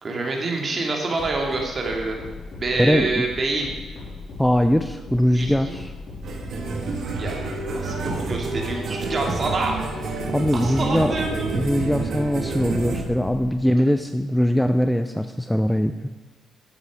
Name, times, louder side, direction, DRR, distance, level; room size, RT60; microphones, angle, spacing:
voice 1, 0.0-2.2 2.6-3.7 5.3-5.8 7.2-9.8 10.5-11.5, right 3 dB, 40° right, 1 dB, 2.6 m, -27 dB
sound 1, 1.2-13.4, left 3 dB, 55° left, 4.2 m, -38 dB
voice 2, 2.7-3.3 4.4-5.9 10.3-11.1 11.5-16.1, equal, 5° left, 8 dB, 0.5 m, -21 dB
sound 2, 6.2-13.0, right 3 dB, 65° right, 2.0 m, -29 dB
11.5 x 8.2 x 5.0 m, 1.3 s
cardioid pair, 90°, 0 cm